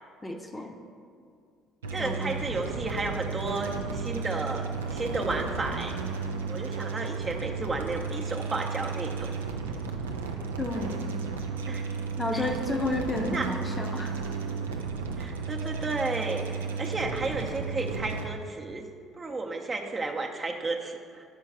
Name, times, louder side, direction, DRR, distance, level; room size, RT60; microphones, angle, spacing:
voice 1, 0.2-0.8 2.0-2.3 10.6-11.0 12.2-14.1, left 2 dB, 20° left, 4 dB, 0.7 m, -31 dB
sound 1, 1.8-18.3, right 4 dB, 85° right, 0.4 m, -33 dB
voice 2, 1.9-5.9 6.5-9.3 11.7-11.8 12.3-12.5 13.3-13.5 15.2-18.9 19.2-21.2, right 3 dB, 30° right, 2 dB, 0.7 m, -33 dB
4.6 x 4.5 x 5.9 m, 2.2 s
hypercardioid pair, 55°, 0 cm